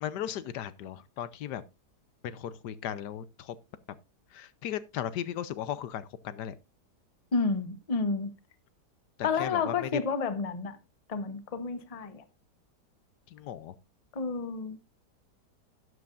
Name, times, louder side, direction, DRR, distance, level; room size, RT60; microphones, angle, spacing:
voice 1, 0.0-1.6 2.2-3.5 4.3-6.5 9.2-10.0 13.3-13.7, left 10 dB, 80° left, 1.3 m, -36 dB
voice 2, 7.3-8.3 9.2-10.8 11.1-12.2 14.1-14.8, left 4 dB, 30° left, 0.8 m, -30 dB
12.5 x 9.5 x 2.5 m
omnidirectional pair, 1.8 m